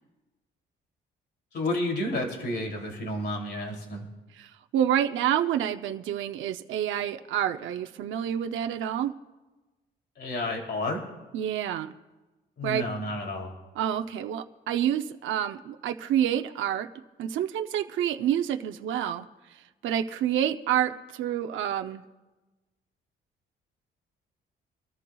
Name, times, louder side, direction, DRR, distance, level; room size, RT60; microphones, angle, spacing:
voice 1, 1.5-4.0 10.2-11.0 12.6-13.5, left 1 dB, 60° left, 1 dB, 2.9 m, -31 dB
voice 2, 4.4-9.1 11.3-11.9 12.6-12.8 13.8-16.9 17.2-19.2 19.8-22.0, right 10 dB, 75° right, 7 dB, 0.6 m, -28 dB
25.0 x 13.5 x 2.3 m, 1.2 s
cardioid pair, 90°, 20 cm